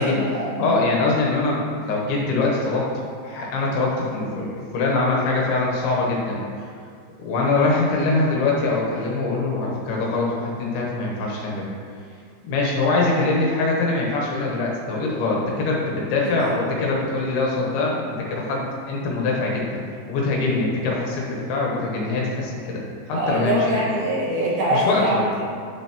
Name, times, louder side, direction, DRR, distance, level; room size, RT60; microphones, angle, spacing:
voice 1, 0.0-0.8 16.2-16.6 23.1-25.5, right 1 dB, 70° right, -7 dB, 3.4 m, -24 dB
voice 2, 0.6-4.5 4.7-6.7 7.2-11.7 12.4-19.7 20.1-22.8 23.1-23.6 24.7-25.2, left 3 dB, 75° left, -3 dB, 3.0 m, -23 dB
9.2 x 6.9 x 3.0 m, 2.2 s
omnidirectional pair, 4.6 m